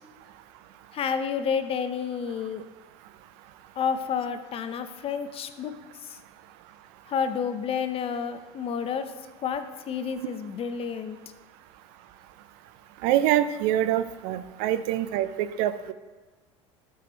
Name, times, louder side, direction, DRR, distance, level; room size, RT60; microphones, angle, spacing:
voice 1, 0.9-2.6 3.8-5.7 6.0-6.2 7.1-9.1 9.4-11.2, left 7 dB, 40° left, 10 dB, 0.7 m, -30 dB
voice 2, 13.0-15.9, right 12 dB, 65° right, 12 dB, 0.5 m, -25 dB
12.5 x 4.9 x 3.0 m, 1.3 s
hypercardioid pair, 80°, 15 cm